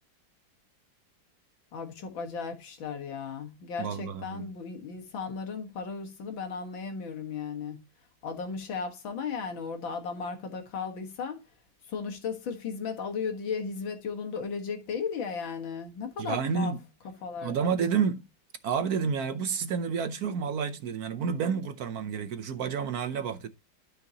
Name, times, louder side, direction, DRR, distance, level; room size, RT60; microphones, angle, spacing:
voice 1, 1.7-7.8 8.2-11.4 11.9-16.7 17.2-17.6, left 5 dB, 85° left, 2.3 m, -35 dB
voice 2, 3.8-4.5 16.2-16.8 17.4-18.2 18.6-23.5, right 6 dB, 65° right, 1.0 m, -30 dB
12.0 x 5.7 x 2.8 m
omnidirectional pair, 2.1 m